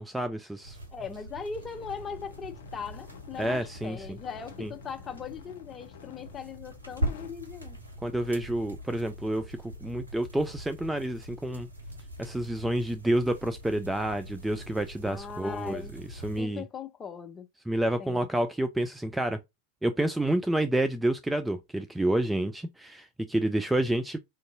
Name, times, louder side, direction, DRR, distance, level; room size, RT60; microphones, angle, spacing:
voice 1, 0.0-0.8 3.4-4.0 4.6-4.7 8.0-11.7 12.2-16.6 17.7-19.4 19.8-24.2, right 1 dB, 5° right, 0.3 m, -29 dB
sound 1, 0.6-16.4, equal, 75° right, 0.9 m, -42 dB
voice 2, 0.9-7.8 15.0-16.0 16.4-17.5 18.0-18.3, left 6 dB, 20° left, 0.7 m, -39 dB
sound 2, 1.5-7.3, left 7 dB, 60° left, 0.6 m, -50 dB
4.5 x 2.6 x 2.6 m
figure-of-eight pair, 90°, 0 cm